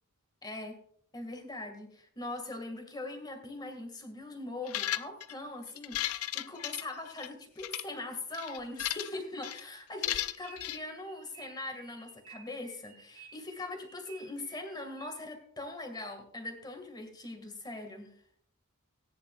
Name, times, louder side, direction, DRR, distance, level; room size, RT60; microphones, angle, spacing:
voice 1, 0.4-0.8 1.1-18.1, left 2 dB, 20° left, 4 dB, 2.2 m, -41 dB
sound 1, 4.7-5.3 5.8-7.3 7.6-7.8 8.3-9.2 9.4-9.6 10.0-10.8, left 13 dB, 75° left, 0.5 m, -35 dB
sound 2, 10.1-15.4, right 6 dB, 85° right, 3.1 m, -55 dB
18.0 x 10.0 x 2.5 m, 0.62 s
head